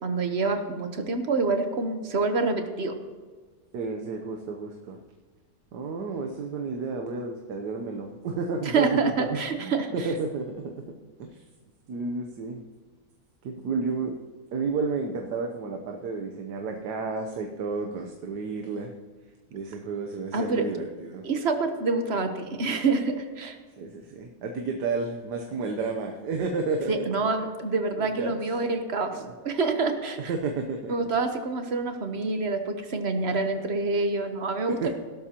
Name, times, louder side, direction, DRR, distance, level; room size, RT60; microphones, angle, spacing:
voice 1, 0.0-2.9 8.7-10.1 20.3-20.7 21.2-23.6 26.9-30.2 30.9-34.9, right 3 dB, 45° right, 6 dB, 1.2 m, -27 dB
voice 2, 3.7-5.0 5.7-10.7 11.2-11.4 11.9-12.6 13.4-14.2 14.5-18.9 19.5-21.2 23.8-27.5 28.0-28.4 29.1-29.2 30.3-31.1 34.7-34.9, right 4 dB, 80° right, 2 dB, 1.5 m, -31 dB
17.0 x 12.0 x 2.9 m, 1.4 s
omnidirectional pair, 1.8 m